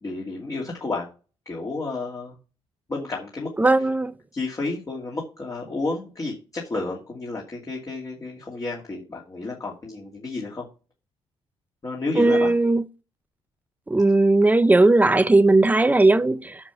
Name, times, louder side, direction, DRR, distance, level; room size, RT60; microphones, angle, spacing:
voice 1, 0.0-1.1 1.5-2.4 2.9-3.8 4.3-10.6 11.8-12.5, left 3 dB, 30° left, 2.6 m, -31 dB
voice 2, 3.6-4.1 12.2-12.8 13.9-16.6, right 2 dB, 15° right, 0.6 m, -17 dB
7.2 x 6.7 x 7.2 m
cardioid pair, 100°, 11 cm